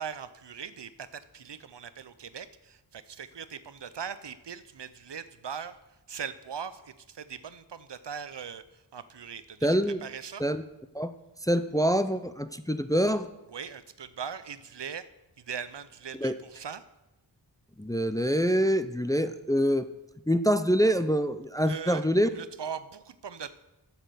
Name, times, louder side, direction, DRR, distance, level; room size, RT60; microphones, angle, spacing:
voice 1, 0.0-5.8 6.1-8.6 8.9-10.4 13.5-15.1 15.5-16.8 21.6-22.1 22.3-23.5, right 7 dB, 70° right, 14 dB, 0.6 m, -40 dB
voice 2, 9.6-10.0 10.4-10.6 10.9-11.1 11.4-13.3 16.2-16.3 17.8-19.9 20.3-22.3, equal, 10° left, 10 dB, 0.4 m, -25 dB
7.3 x 7.3 x 6.8 m, 0.96 s
wide cardioid pair, 40°, 44 cm